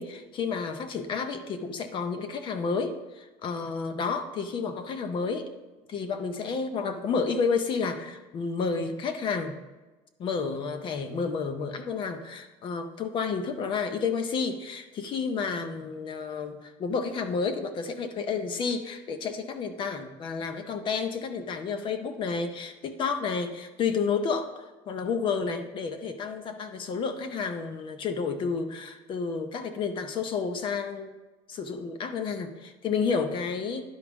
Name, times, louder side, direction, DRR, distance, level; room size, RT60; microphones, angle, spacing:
voice 1, 0.0-5.5 5.9-9.6 10.2-31.1 31.5-33.8, left 5 dB, 40° left, 8 dB, 0.6 m, -31 dB
11.0 x 4.8 x 3.5 m, 1.2 s
cardioid pair, 150°, 13 cm